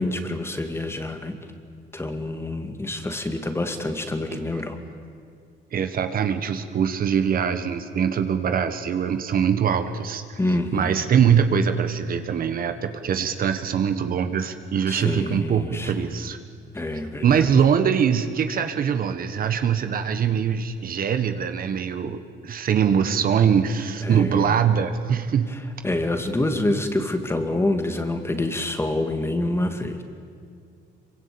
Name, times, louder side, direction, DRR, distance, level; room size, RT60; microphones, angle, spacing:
voice 1, 0.0-1.4 1.9-4.8 10.4-11.0 14.9-16.1 16.7-17.5 24.0-24.6 25.8-30.0, left 1 dB, 10° left, 6 dB, 2.3 m, -27 dB
voice 2, 5.7-10.4 10.7-16.4 17.2-25.5, right 7 dB, 50° right, 9 dB, 1.5 m, -22 dB
26.0 x 24.0 x 8.7 m, 2.2 s
cardioid pair, 130°, 20 cm